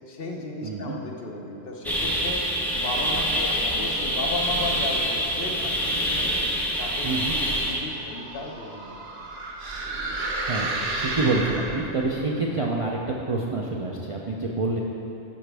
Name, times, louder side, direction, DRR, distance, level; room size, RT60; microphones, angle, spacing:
voice 1, 0.1-2.5 2.7-6.4 6.8-7.1 7.4-8.9, left 2 dB, 60° left, 0 dB, 0.9 m, -34 dB
voice 2, 0.6-1.0 7.0-7.4 10.5-10.7 11.0-14.8, right 3 dB, 45° right, -3 dB, 0.4 m, -27 dB
sound 1, 1.8-7.8, equal, ahead, 0.8 m, -26 dB
sound 2, 7.7-12.1, right 2 dB, 65° right, 1.1 m, -32 dB
11.5 x 5.0 x 3.4 m, 2.9 s
omnidirectional pair, 1.2 m